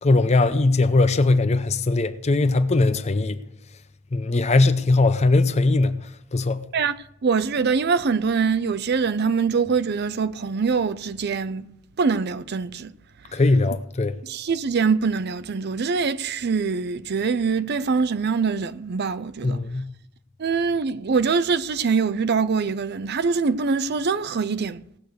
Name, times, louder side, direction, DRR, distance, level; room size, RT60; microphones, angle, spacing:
voice 1, 0.0-3.4 4.1-6.0 6.3-6.6 13.3-14.2 19.4-19.9, left 2 dB, 30° left, 0.5 m, -20 dB
voice 2, 7.2-11.7 12.0-12.9 14.2-19.6 20.4-24.8, right 5 dB, 50° right, 0.5 m, -23 dB
17.5 x 6.7 x 6.4 m
head